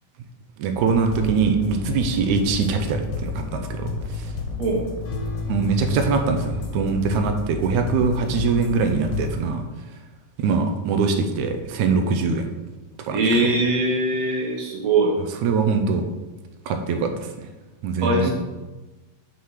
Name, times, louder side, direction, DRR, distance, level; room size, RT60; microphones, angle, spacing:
voice 1, 0.6-4.3 5.5-9.6 10.4-12.5 13.0-13.5 15.4-16.1 16.7-17.3 17.8-18.3, right 5 dB, 80° right, 5 dB, 1.9 m, -23 dB
sound 1, 0.8-9.4, left 3 dB, 60° left, 1.9 m, -30 dB
voice 2, 13.1-15.2 18.0-18.3, right 2 dB, 60° right, -1 dB, 2.2 m, -21 dB
6.0 x 5.8 x 4.6 m, 1.1 s
omnidirectional pair, 3.6 m